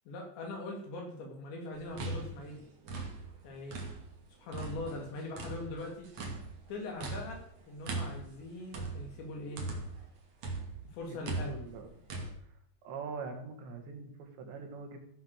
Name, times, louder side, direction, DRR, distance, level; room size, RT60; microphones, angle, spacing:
voice 1, 0.1-2.6 3.4-3.8 4.4-6.1 6.7-9.7 10.9-11.6, left 2 dB, 70° left, 1 dB, 5.2 m, -41 dB
sound 1, 1.7-4.2 4.5-10.1 10.4-12.3, right 2 dB, 40° right, 3.0 m, -40 dB
voice 2, 11.1-11.9 12.4-12.5 12.8-15.0, right 4 dB, 70° right, 4 dB, 4.0 m, -43 dB
15.0 x 7.8 x 6.6 m, 0.76 s
omnidirectional pair, 5.4 m